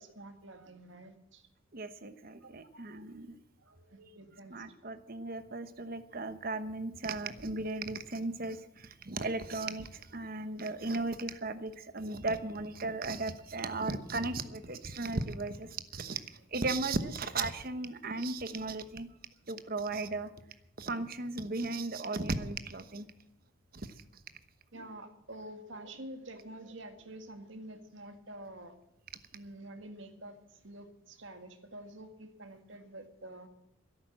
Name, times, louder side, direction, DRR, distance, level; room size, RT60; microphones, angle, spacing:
voice 1, 0.0-1.4 2.7-3.1 3.6-4.7 10.1-10.8 24.7-28.7 29.3-33.5, right 1 dB, 65° right, 6 dB, 2.0 m, -48 dB
voice 2, 1.7-3.4 4.5-16.2 16.5-19.1 19.5-20.3 20.8-23.1 23.7-23.9, right 3 dB, 45° right, 11 dB, 1.1 m, -36 dB
13.5 x 11.0 x 7.5 m, 0.83 s
head